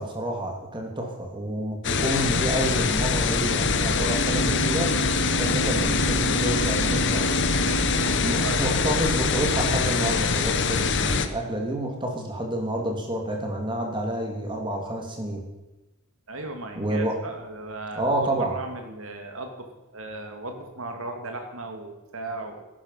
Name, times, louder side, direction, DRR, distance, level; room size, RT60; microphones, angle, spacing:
voice 1, 0.0-4.9 5.4-7.4 8.2-15.4 16.8-17.2 18.0-18.5, right 1 dB, 20° right, 1 dB, 2.8 m, -29 dB
sound 1, 1.8-11.3, left 5 dB, 55° left, 1.1 m, -24 dB
sound 2, 4.0-9.8, right 4 dB, 85° left, 3.4 m, -32 dB
voice 2, 7.7-8.8 16.3-22.7, right 2 dB, 65° right, 4 dB, 2.4 m, -36 dB
13.5 x 11.5 x 5.8 m, 1.1 s
head